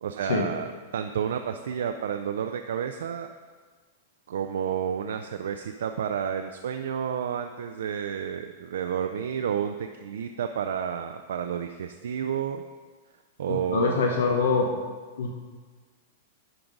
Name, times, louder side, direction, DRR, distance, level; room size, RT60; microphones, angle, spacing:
voice 1, 0.0-3.3 4.3-12.6 13.4-14.0, right 8 dB, 85° right, 7 dB, 0.4 m, -30 dB
voice 2, 13.5-14.8 15.2-15.3, left 4 dB, 85° left, 1 dB, 0.8 m, -25 dB
10.5 x 3.8 x 5.2 m, 1.5 s
supercardioid pair, 160°, 0 cm